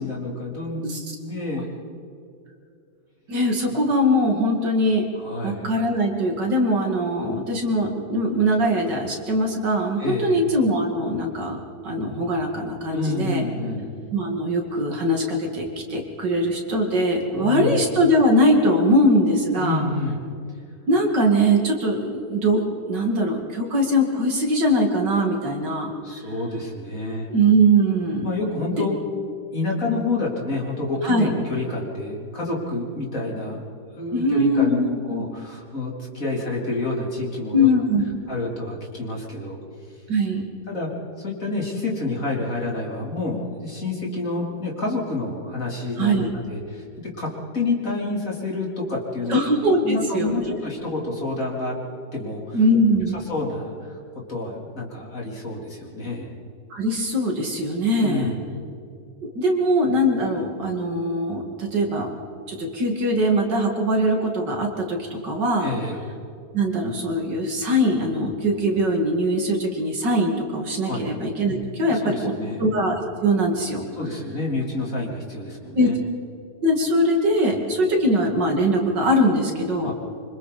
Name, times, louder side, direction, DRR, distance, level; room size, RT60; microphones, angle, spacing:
voice 1, 0.0-1.7 3.7-3.8 5.2-5.7 10.0-10.4 12.9-13.9 17.3-17.9 19.5-20.2 26.0-27.3 28.2-29.0 29.5-33.6 33.9-37.7 38.3-39.6 40.7-40.9 41.2-46.8 47.2-49.4 49.8-51.8 52.1-52.6 53.1-56.3 58.0-58.4 65.6-66.0 70.8-71.1 71.9-72.6 73.9-76.0 79.8-79.9, left 2 dB, 40° left, -3 dB, 4.0 m, -28 dB
voice 2, 3.3-5.0 5.4-11.6 11.8-13.4 14.1-19.8 20.9-26.2 27.3-28.4 31.0-31.3 34.1-35.2 37.5-38.0 40.1-40.5 46.0-46.3 49.3-50.6 52.5-53.2 56.7-58.3 59.2-62.1 62.5-65.7 66.5-72.3 72.6-73.8 75.7-75.9 76.6-79.9, equal, 60° right, 1 dB, 3.1 m, -21 dB
26.5 x 25.5 x 4.3 m, 2.5 s
omnidirectional pair, 2.1 m